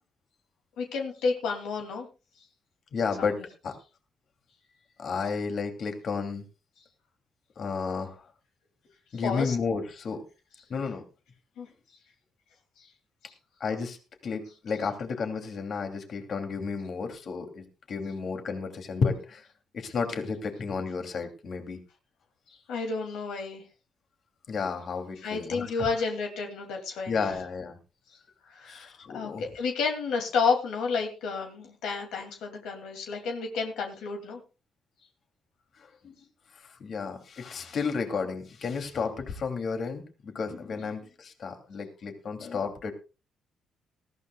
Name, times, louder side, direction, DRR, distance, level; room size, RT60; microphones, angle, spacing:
voice 1, 0.8-2.1 3.2-3.4 9.1-9.5 11.6-11.7 12.8-12.9 13.2-13.3 22.5-23.6 25.2-27.3 28.1-28.2 28.5-34.4, left 5 dB, 85° left, 2 dB, 2.5 m, -31 dB
voice 2, 2.9-3.3 3.6-3.7 5.0-6.4 7.6-8.2 9.1-10.2 10.7-11.0 13.6-14.0 14.2-19.4 19.7-21.8 24.5-25.9 27.1-27.8 28.7-29.4 36.0-36.1 36.6-42.9, left 5 dB, 55° left, 5 dB, 2.8 m, -32 dB
19.5 x 15.0 x 2.3 m, 0.31 s
cardioid pair, 90°, 0 cm